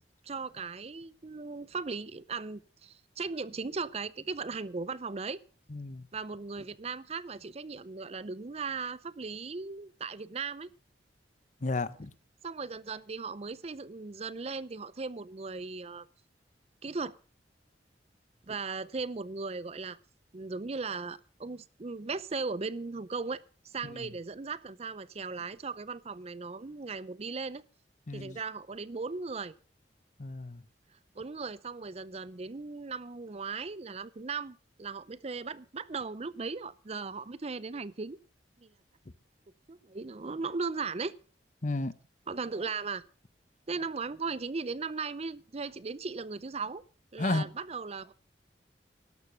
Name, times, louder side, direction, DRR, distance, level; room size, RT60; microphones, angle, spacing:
voice 1, 0.2-5.4 6.1-10.7 12.4-16.1 16.8-17.2 18.5-20.0 20.3-27.6 28.1-29.5 31.2-38.2 38.6-38.7 39.7-41.2 42.3-43.0 43.7-46.8 47.1-48.1, right 4 dB, 35° right, 0.6 m, -37 dB
voice 2, 5.7-6.0 11.6-12.1 28.1-28.4 30.2-30.6 41.6-41.9 47.2-47.5, left 2 dB, 45° left, 0.8 m, -32 dB
12.5 x 11.5 x 6.3 m
head